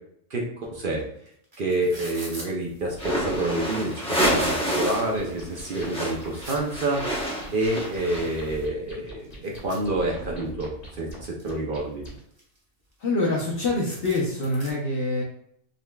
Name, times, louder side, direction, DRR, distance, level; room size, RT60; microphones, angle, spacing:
voice 1, 0.3-1.0 1.6-7.2 7.5-12.0, right 2 dB, 55° right, -1 dB, 0.6 m, -28 dB
sound 1, 1.0-1.1 1.3-2.5 3.3-3.4 3.8-4.6 5.1-5.2 5.5-6.6 7.8-7.9 8.2-8.3 8.5-10.5 10.9-11.6 12.1-13.3 13.6-13.7 13.9-14.7, right 1 dB, 25° right, 1.0 m, -44 dB
sound 2, 2.9-5.1 5.4-8.5, equal, 5° left, 0.6 m, -28 dB
sound 3, 5.2-12.2, equal, 35° left, 1.1 m, -44 dB
voice 2, 13.0-15.2, left 2 dB, 55° left, -4 dB, 0.9 m, -25 dB
3.8 x 3.3 x 2.2 m, 0.70 s
omnidirectional pair, 1.3 m